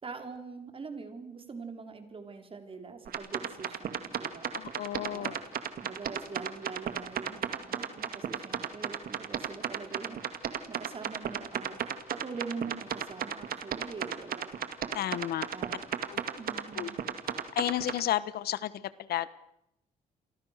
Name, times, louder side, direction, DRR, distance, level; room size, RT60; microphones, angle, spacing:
voice 1, 0.0-4.6 5.1-5.4 5.8-10.2 10.7-11.8 12.1-14.6 15.5-15.8 16.4-17.0, right 4 dB, 35° right, 7 dB, 4.0 m, -43 dB
sound 1, 3.1-18.0, right 9 dB, 70° right, 2.3 m, -34 dB
voice 2, 4.5-5.4 14.9-15.5 16.1-16.2 16.7-16.9 17.6-19.3, left 12 dB, 85° left, 16 dB, 1.2 m, -32 dB
29.0 x 24.0 x 6.7 m, 0.81 s
cardioid pair, 115°, 16 cm